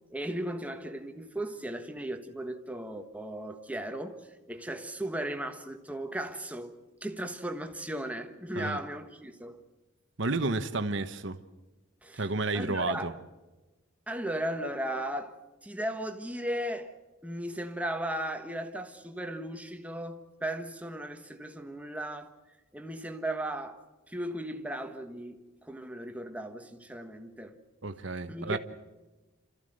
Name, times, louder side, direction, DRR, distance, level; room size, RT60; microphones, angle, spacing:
voice 1, 0.1-4.2 4.5-6.7 7.0-9.6 12.0-12.3 12.5-13.2 14.1-15.4 15.6-16.9 17.2-22.3 22.7-23.8 24.1-27.6 28.3-28.6, right 1 dB, 5° right, 1.4 m, -36 dB
voice 2, 10.2-11.4 12.2-13.1 27.8-28.6, right 3 dB, 60° right, 1.2 m, -31 dB
28.5 x 14.5 x 7.9 m
head